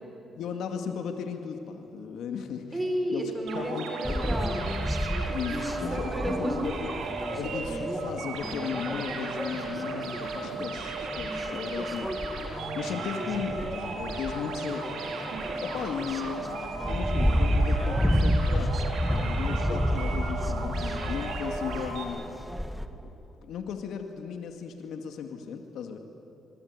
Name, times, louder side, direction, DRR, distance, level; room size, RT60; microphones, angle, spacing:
voice 1, 0.4-2.8 3.1-4.3 5.3-6.9 7.4-12.2 12.7-14.9 15.6-18.8 19.1-22.3 23.4-26.0, left 7 dB, 75° left, 5 dB, 2.1 m, -36 dB
voice 2, 2.7-4.8 5.3-6.6, right 1 dB, 15° right, 3 dB, 5.9 m, -32 dB
sound 1, 3.5-22.0, right 3 dB, 90° right, 4.5 m, -36 dB
sound 2, 4.0-22.9, equal, ahead, 1.8 m, -31 dB
sound 3, 4.6-6.2 6.6-8.3 8.7-10.4 10.7-12.4 12.7-14.4 14.8-16.4 16.9-18.5 18.8-20.6 20.9-21.4, right 5 dB, 55° right, 2.8 m, -46 dB
26.0 x 21.0 x 9.7 m, 2.9 s
cardioid pair, 90°, 0 cm